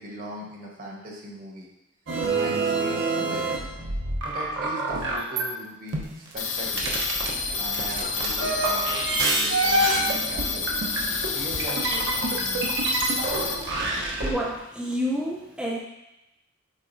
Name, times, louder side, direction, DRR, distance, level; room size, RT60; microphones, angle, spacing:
voice 1, 0.0-1.7 2.3-3.5 4.2-7.0 7.6-10.7 11.3-12.6, equal, 45° right, -1 dB, 1.3 m, -39 dB
sound 1, 2.1-5.5 5.9-14.3, right 2 dB, 65° right, 0.9 m, -27 dB
sound 2, 6.4-13.5, left 5 dB, 70° left, 0.8 m, -29 dB
sound 3, 6.5-14.6, left 1 dB, 40° left, 0.8 m, -45 dB
voice 2, 13.8-15.8, equal, 5° right, -4 dB, 0.6 m, -30 dB
7.5 x 4.7 x 2.7 m, 0.92 s
head